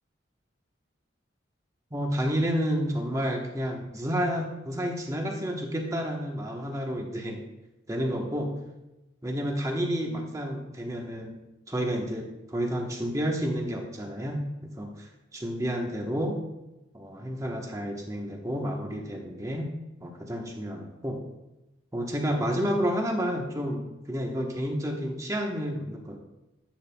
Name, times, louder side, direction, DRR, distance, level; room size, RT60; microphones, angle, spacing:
voice 1, 1.9-7.4 7.9-8.5 9.2-11.3 11.7-14.4 14.8-16.4 16.9-19.7 20.0-21.2 21.9-26.2, equal, 15° right, 2 dB, 1.0 m, -30 dB
10.0 x 9.0 x 2.2 m, 0.98 s
head